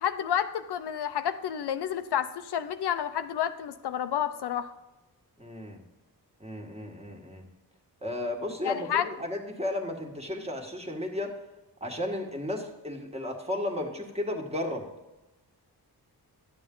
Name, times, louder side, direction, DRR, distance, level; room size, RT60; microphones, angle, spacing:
voice 1, 0.0-4.7 8.6-9.1, left 9 dB, 80° left, 10 dB, 0.7 m, -30 dB
voice 2, 5.4-5.8 6.4-7.4 8.0-11.3 11.8-14.8, left 1 dB, 15° right, 1 dB, 1.6 m, -34 dB
11.5 x 8.1 x 3.8 m, 1.0 s
wide cardioid pair, 105°, 39 cm